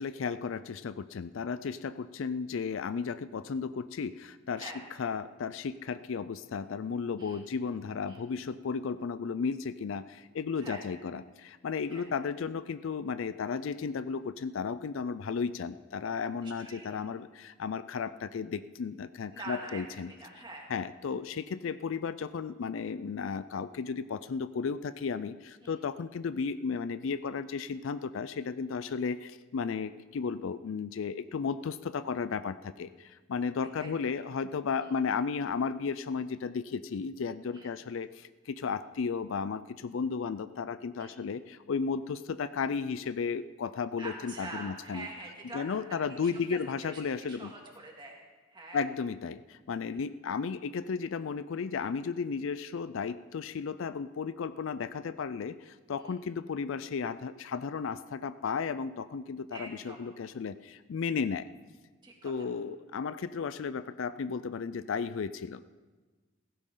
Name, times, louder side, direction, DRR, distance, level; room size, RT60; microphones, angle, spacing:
voice 1, 0.0-4.7 5.0-20.1 20.7-45.1 45.5-47.5 48.7-61.5 62.2-65.6, left 5 dB, 65° left, 14 dB, 0.4 m, -34 dB
voice 2, 16.4-16.9 19.3-20.7 25.6-25.8 28.9-29.0 33.8-34.1 34.8-34.9 37.5-37.7 41.0-41.2 44.0-45.6 45.9-48.2 48.5-48.9 55.9-56.2 59.5-60.0 62.0-62.5, right 2 dB, 20° right, -1 dB, 2.3 m, -45 dB
16.0 x 15.0 x 3.8 m, 1.3 s
head